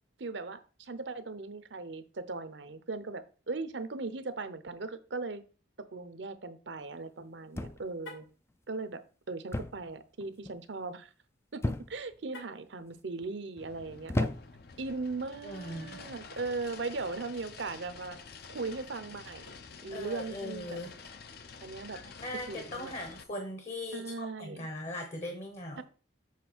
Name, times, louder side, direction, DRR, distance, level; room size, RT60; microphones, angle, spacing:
voice 1, 0.2-5.4 5.9-8.2 8.7-9.0 9.3-11.1 11.5-14.3 14.8-18.2 18.5-19.5 19.8-20.8 21.6-22.0 22.5-22.9 23.9-24.7 25.8-25.9, right 3 dB, 65° right, 11 dB, 0.8 m, -38 dB
sound 1, 7.5-8.1 9.5-9.9 10.2-10.6 11.6-12.2 12.9-13.3 14.1-14.7 15.7-15.9, left 1 dB, 15° left, 0.3 m, -34 dB
Car, 8.0-8.4 12.3-12.8, left 2 dB, 70° left, 1.8 m, -48 dB
sound 2, 13.6-23.2, left 5 dB, 50° left, 0.6 m, -49 dB
voice 2, 15.4-16.0 19.9-20.9 21.9-25.8, left 1 dB, 35° left, 4 dB, 1.0 m, -40 dB
7.5 x 3.3 x 6.1 m, 0.36 s
head